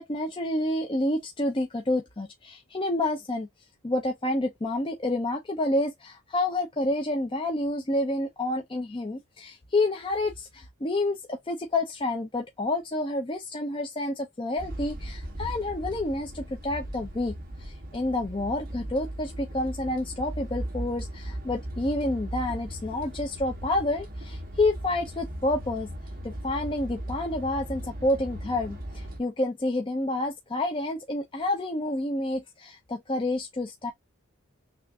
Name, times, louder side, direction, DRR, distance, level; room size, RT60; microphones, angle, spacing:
voice 1, 0.0-3.5 3.8-17.3 17.6-25.9 26.2-33.9, left 2 dB, 25° left, 0.5 m, -29 dB
sound 1, 14.6-29.2, right 1 dB, 40° right, 1.2 m, -38 dB
5.8 x 2.5 x 2.2 m
head